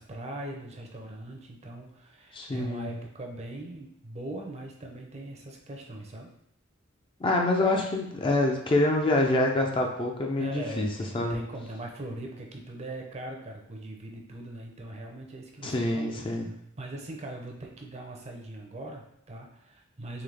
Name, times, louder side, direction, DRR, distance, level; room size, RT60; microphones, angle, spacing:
voice 1, 0.0-6.3 10.4-16.2 16.8-20.2, right 1 dB, 30° right, 1 dB, 0.6 m, -40 dB
voice 2, 2.3-2.9 7.2-10.9 11.1-11.4 15.6-16.5, left 2 dB, 25° left, 1 dB, 0.4 m, -26 dB
3.9 x 3.1 x 3.3 m, 0.75 s
head